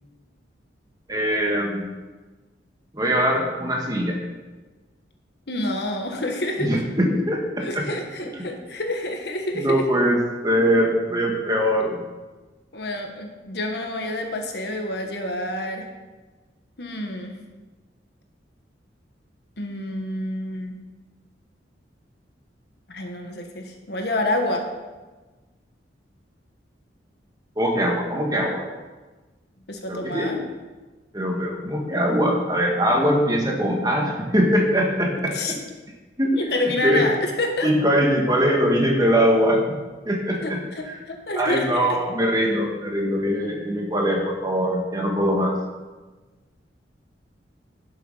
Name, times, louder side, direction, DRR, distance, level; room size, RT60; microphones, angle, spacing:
voice 1, 1.1-1.9 2.9-4.2 6.6-7.8 9.6-12.0 27.6-28.6 29.9-30.3 31.1-35.4 36.2-36.4 36.8-37.0 37.6-39.8 40.1-40.6 41.3-45.6, equal, 20° right, 0 dB, 1.7 m, -22 dB
voice 2, 5.5-6.8 7.6-9.9 12.7-15.9 16.8-17.4 19.6-20.7 22.9-24.7 29.7-30.4 35.3-35.6 36.4-37.7 40.3-42.0, left 1 dB, 60° left, 3 dB, 1.5 m, -28 dB
11.5 x 7.4 x 5.6 m, 1.2 s
head